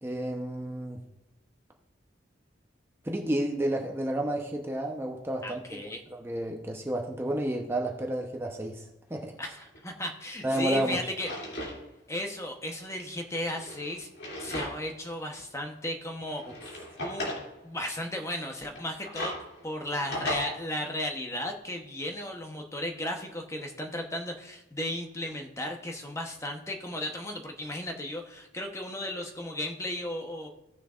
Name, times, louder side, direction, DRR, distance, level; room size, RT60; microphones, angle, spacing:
voice 1, 0.0-1.0 3.0-5.8 6.1-8.8 9.1-9.3 10.4-11.0, right 1 dB, 15° right, 1 dB, 0.8 m, -31 dB
voice 2, 5.4-6.0 9.4-11.3 12.1-14.1 14.4-16.4 17.0-17.3 17.6-19.4 19.6-30.5, left 1 dB, 15° left, 3 dB, 0.9 m, -35 dB
Drawer open or close, 9.7-9.8 10.4-11.8 12.1-12.2 13.3-15.0 15.4-15.5 16.3-17.5 18.6-20.4, left 1 dB, 60° left, 2.7 m, -37 dB
16.5 x 6.6 x 2.5 m, 0.93 s
head